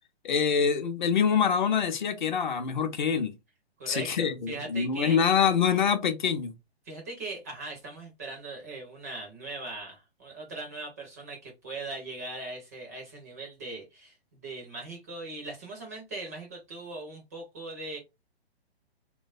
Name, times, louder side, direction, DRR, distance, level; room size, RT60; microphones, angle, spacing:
voice 1, 0.2-3.3 3.9-6.6, left 7 dB, 45° left, 0.5 m, -25 dB
voice 2, 3.8-5.2 6.8-18.0, right 2 dB, 15° right, 0.4 m, -40 dB
3.0 x 2.2 x 2.4 m
figure-of-eight pair, 120°, 32 cm